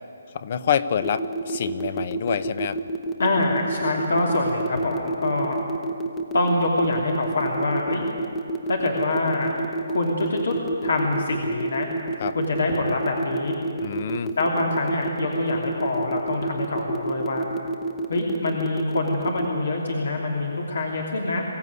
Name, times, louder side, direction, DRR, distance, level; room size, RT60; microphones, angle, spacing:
voice 1, 0.3-2.8 12.2-12.4 13.8-14.3, left 7 dB, 40° left, 14 dB, 0.8 m, -26 dB
sound 1, 1.0-19.4, right 2 dB, 10° left, 0.9 m, -28 dB
voice 2, 3.2-5.6 6.3-8.1 8.7-9.5 9.9-10.5 10.8-11.9 12.3-13.6 14.4-17.5 18.1-21.4, left 2 dB, 75° left, 1 dB, 2.9 m, -25 dB
23.5 x 15.0 x 9.6 m, 2.7 s
hypercardioid pair, 170°, 0 cm